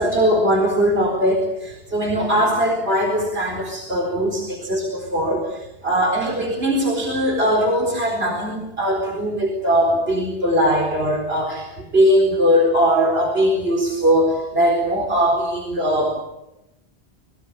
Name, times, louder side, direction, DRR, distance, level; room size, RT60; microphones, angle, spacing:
voice 1, 0.0-16.2, equal, 65° right, 2 dB, 4.6 m, -20 dB
28.5 x 21.5 x 7.3 m, 0.89 s
omnidirectional pair, 1.1 m